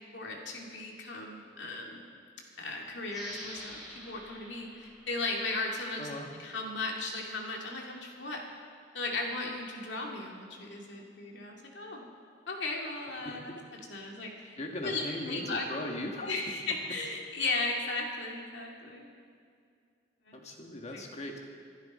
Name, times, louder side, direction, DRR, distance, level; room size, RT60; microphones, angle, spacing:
voice 1, 0.1-2.0 2.6-6.1 6.4-8.4 8.9-12.0 12.5-13.5 13.9-15.6 16.2-19.1 20.3-20.4 20.9-21.0, left 3 dB, 75° left, 0 dB, 2.3 m, -36 dB
sound 1, 3.1-6.3, equal, ahead, 5.2 m, -48 dB
voice 2, 6.0-6.3 13.2-13.3 14.6-16.4 20.3-21.4, left 1 dB, 40° left, 2 dB, 1.6 m, -38 dB
25.0 x 11.5 x 4.2 m, 2.3 s
head